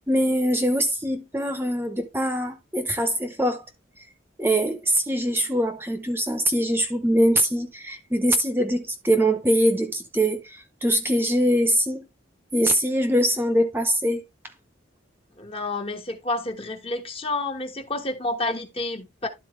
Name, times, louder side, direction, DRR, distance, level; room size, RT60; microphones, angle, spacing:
voice 1, 0.1-3.6 4.4-12.1 12.5-14.2, equal, 10° right, 0.8 m, -23 dB
voice 2, 15.4-19.3, left 2 dB, 30° left, 1.2 m, -29 dB
12.0 x 4.2 x 3.2 m
head